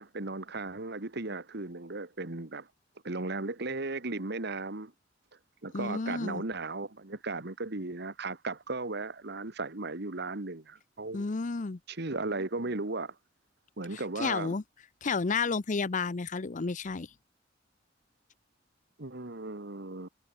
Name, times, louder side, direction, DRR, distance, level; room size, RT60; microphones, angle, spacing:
voice 1, 0.0-2.7 3.0-4.9 5.6-11.3 11.9-13.2 13.8-14.5 19.0-20.1, right 3 dB, 60° right, 1.7 m, -36 dB
voice 2, 5.7-6.4 11.1-11.8 13.9-14.6 15.0-17.1, left 4 dB, 40° left, 0.6 m, -31 dB
head